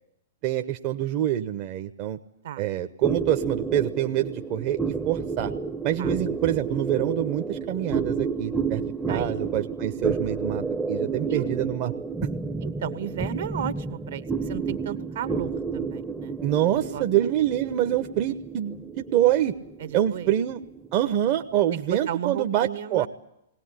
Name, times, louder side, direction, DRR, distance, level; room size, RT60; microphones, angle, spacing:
voice 1, 0.4-2.2 2.6-5.5 5.8-8.8 9.1-11.9 16.4-19.5 19.9-20.6 20.9-23.1, right 12 dB, 40° right, 6 dB, 1.0 m, -26 dB
sound 1, 3.0-21.8, right 5 dB, 5° right, 0.8 m, -31 dB
voice 2, 9.1-9.4 11.3-11.5 12.6-16.4 16.9-17.0 19.8-20.3 21.7-23.1, right 9 dB, 60° right, 12 dB, 1.3 m, -34 dB
20.0 x 18.0 x 10.0 m, 0.81 s
figure-of-eight pair, 110°, 0 cm